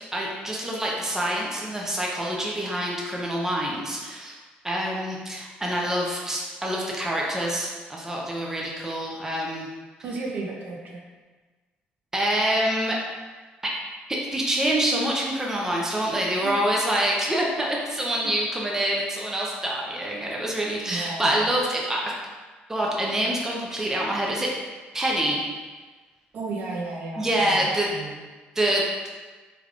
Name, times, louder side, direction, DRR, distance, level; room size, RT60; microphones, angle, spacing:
voice 1, 0.1-4.4 4.6-9.7 12.1-13.0 14.1-22.0 22.7-24.5 24.9-25.4 27.2-27.9 28.6-29.1, right 1 dB, 10° right, -3 dB, 0.6 m, -26 dB
voice 2, 10.0-11.0 16.4-16.5 17.9-18.3 20.8-21.5 26.3-28.2, right 3 dB, 55° right, -2 dB, 0.7 m, -34 dB
3.4 x 3.2 x 2.4 m, 1.3 s
cardioid pair, 90°, 4 cm